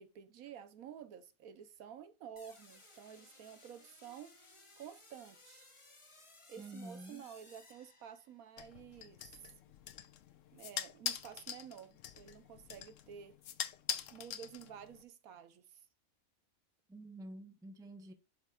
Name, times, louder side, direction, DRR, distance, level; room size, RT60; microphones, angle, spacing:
voice 1, 0.0-5.7 6.5-9.2 10.5-13.4 14.1-15.8, right 8 dB, 85° right, 1.3 m, -51 dB
sound 1, 2.4-8.5, left 2 dB, 25° left, 1.2 m, -61 dB
voice 2, 6.6-7.2 16.9-18.1, right 1 dB, 5° right, 0.5 m, -49 dB
sound 2, 8.6-15.0, left 9 dB, 70° left, 1.0 m, -44 dB
11.5 x 4.9 x 2.4 m
omnidirectional pair, 1.5 m